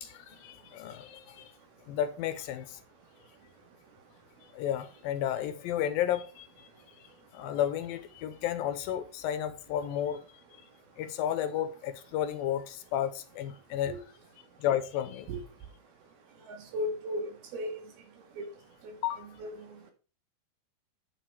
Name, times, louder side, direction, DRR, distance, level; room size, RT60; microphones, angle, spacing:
voice 1, 0.0-1.5 1.9-2.8 4.5-6.7 7.3-10.2 11.0-13.9 14.6-15.3 19.0-19.3, left 10 dB, 80° left, 2.3 m, -32 dB
voice 2, 16.5-17.8 18.4-18.5 19.4-19.5, equal, 80° right, 3.8 m, -35 dB
9.4 x 6.3 x 4.6 m
omnidirectional pair, 4.4 m